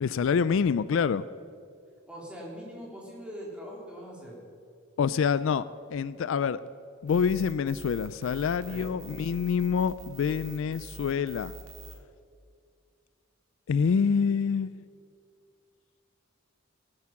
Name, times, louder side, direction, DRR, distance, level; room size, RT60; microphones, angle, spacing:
voice 1, 0.0-1.2 5.0-5.6 5.9-6.6 7.0-11.5 13.7-14.7, left 6 dB, 70° left, 0.4 m, -26 dB
voice 2, 2.1-4.4 8.6-8.9, equal, 5° right, 3.4 m, -42 dB
sound 1, 7.1-12.0, right 2 dB, 75° right, 2.5 m, -45 dB
18.0 x 9.7 x 6.0 m
head